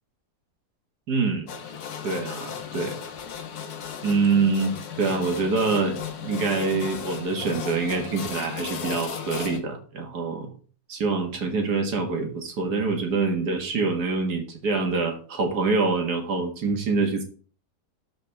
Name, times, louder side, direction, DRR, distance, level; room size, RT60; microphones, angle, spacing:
voice 1, 1.1-1.5 2.0-3.0 4.0-10.5 10.9-17.2, right 4 dB, 90° right, 4 dB, 2.2 m, -25 dB
sound 1, 1.5-9.6, left 7 dB, 75° left, 1.5 m, -35 dB
12.0 x 5.0 x 3.5 m, 0.40 s
omnidirectional pair, 1.7 m